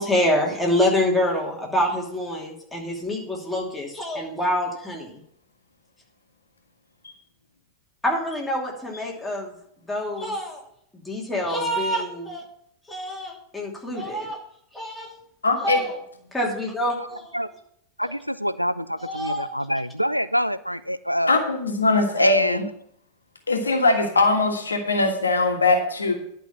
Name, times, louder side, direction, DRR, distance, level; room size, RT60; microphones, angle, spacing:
voice 1, 0.0-5.2 8.0-9.5 9.9-10.6 11.0-12.4 12.9-14.4 14.7-15.1 15.6-15.9 16.3-17.4 19.0-19.5, left 1 dB, 5° left, -2 dB, 2.9 m, -26 dB
voice 2, 15.4-15.8 21.3-22.7 23.5-26.1, left 3 dB, 75° left, 4 dB, 1.6 m, -21 dB
voice 3, 18.0-21.3 22.2-22.7, equal, 90° right, 15 dB, 0.4 m, -26 dB
11.0 x 5.6 x 7.2 m, 0.70 s
figure-of-eight pair, 90°, 0 cm